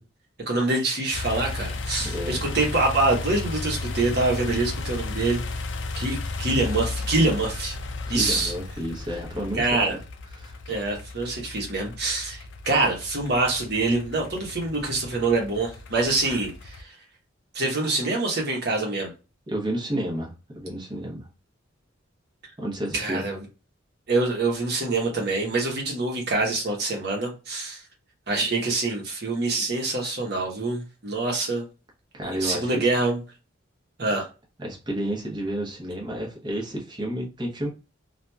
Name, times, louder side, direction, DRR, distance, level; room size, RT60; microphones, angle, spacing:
voice 1, 0.5-5.6 5.9-7.8 8.1-8.5 9.5-10.0 10.7-16.9 17.5-19.1 22.9-23.4 24.1-27.8 28.3-31.6 32.4-33.2 34.0-34.3, right 2 dB, 55° right, 1.1 m, -25 dB
sound 1, 1.1-16.8, left 3 dB, 60° left, 0.4 m, -34 dB
voice 2, 2.0-2.5 8.1-9.9 10.3-10.6 19.5-21.3 22.6-23.3 32.1-32.9 34.6-37.7, right 1 dB, 25° right, 0.9 m, -31 dB
2.8 x 2.5 x 2.2 m
head